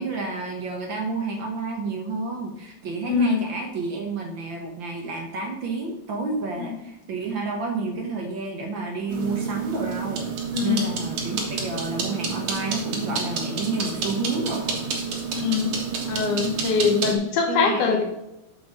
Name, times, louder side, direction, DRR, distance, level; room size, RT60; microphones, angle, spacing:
voice 1, 0.0-10.3 10.6-14.9 16.8-17.2 17.5-18.0, right 3 dB, 55° right, 2 dB, 1.4 m, -30 dB
voice 2, 3.1-3.4 6.6-6.7 10.5-10.8 15.3-15.7 16.1-18.0, left 6 dB, 75° left, 2 dB, 2.8 m, -23 dB
sound 1, 9.1-17.2, right 5 dB, 75° right, 3.0 m, -29 dB
7.7 x 5.2 x 6.4 m, 0.92 s
omnidirectional pair, 3.5 m